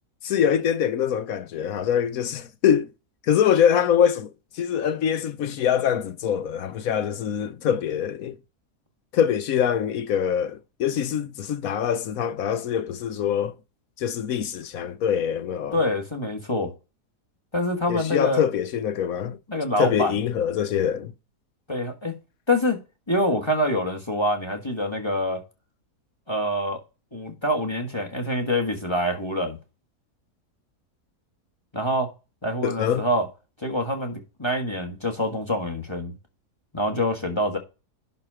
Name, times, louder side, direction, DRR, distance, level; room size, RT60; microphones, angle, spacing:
voice 1, 0.2-2.9 3.3-8.4 9.1-13.5 14.0-15.8 17.9-19.4 19.8-21.1 32.6-33.1, left 8 dB, 65° left, 1.1 m, -24 dB
voice 2, 15.7-16.7 17.5-18.4 19.5-20.1 21.7-22.1 22.5-22.8 23.1-25.4 26.3-26.8 27.1-29.6 31.7-32.1 32.4-33.3 33.6-36.1 36.7-37.6, left 1 dB, 15° left, 1.6 m, -25 dB
11.5 x 4.3 x 4.8 m
omnidirectional pair, 1.7 m